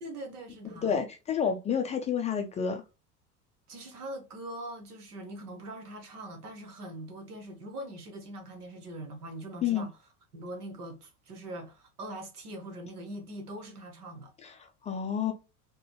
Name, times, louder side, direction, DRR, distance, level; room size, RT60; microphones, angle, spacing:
voice 1, 0.0-1.0 3.7-10.0 10.3-14.3, right 1 dB, 75° right, 1.2 m, -42 dB
voice 2, 0.8-2.8 9.6-9.9 14.8-15.3, left 7 dB, 15° left, 0.4 m, -29 dB
4.6 x 2.2 x 3.1 m
figure-of-eight pair, 75°, 45 cm